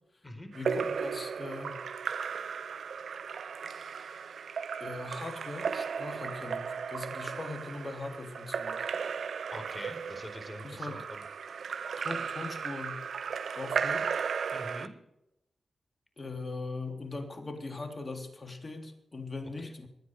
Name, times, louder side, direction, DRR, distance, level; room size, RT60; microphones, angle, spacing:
voice 1, 0.5-1.8 4.8-8.9 10.6-11.0 12.0-13.0 13.6-14.1 16.2-19.9, left 3 dB, 40° left, 4 dB, 3.4 m, -40 dB
Splash splatter / Drip / Trickle dribble, 0.5-14.9, right 6 dB, 75° right, 0.6 m, -35 dB
voice 2, 9.5-11.2 14.5-14.9 19.6-19.7, left 1 dB, 20° left, 7 dB, 4.6 m, -44 dB
23.0 x 9.9 x 4.9 m, 0.86 s
supercardioid pair, 40°, 0 cm